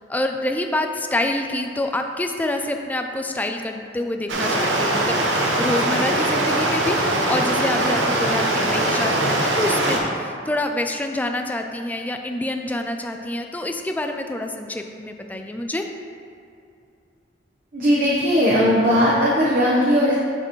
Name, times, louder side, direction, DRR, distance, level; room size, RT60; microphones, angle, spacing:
voice 1, 0.1-5.2 5.6-7.0 7.3-15.9, left 1 dB, 10° left, 4 dB, 0.3 m, -27 dB
Stream, 4.3-10.0, right 1 dB, 85° right, 1.0 m, -21 dB
voice 2, 17.7-20.2, equal, 50° right, -6 dB, 1.0 m, -18 dB
7.6 x 6.5 x 3.1 m, 2.5 s
head